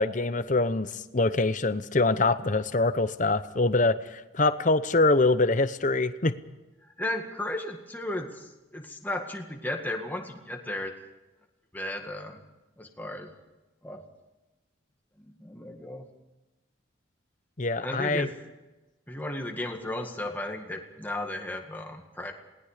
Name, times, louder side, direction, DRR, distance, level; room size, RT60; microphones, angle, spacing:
voice 1, 0.0-6.3 17.6-18.3, left 2 dB, 40° left, 12 dB, 0.8 m, -24 dB
voice 2, 6.8-10.9 11.7-12.4 12.8-13.3 13.8-14.0 15.2-16.1 17.8-18.3 19.1-22.3, left 1 dB, 10° left, 2 dB, 1.9 m, -35 dB
28.0 x 19.0 x 5.1 m, 1.1 s
head